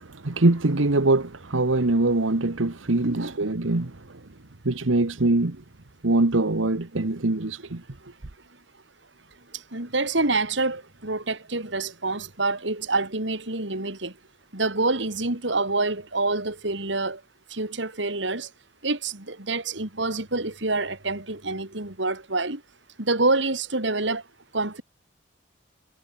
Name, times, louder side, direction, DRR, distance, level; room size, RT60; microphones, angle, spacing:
voice 1, 0.0-4.2 4.6-5.6 6.0-7.8, right 2 dB, 90° right, 1.4 m, -23 dB
voice 2, 3.0-3.3 9.5-14.1 14.5-17.2 17.5-18.5 18.8-22.6 23.0-24.2 24.5-24.8, right 3 dB, 70° right, 3.2 m, -27 dB
head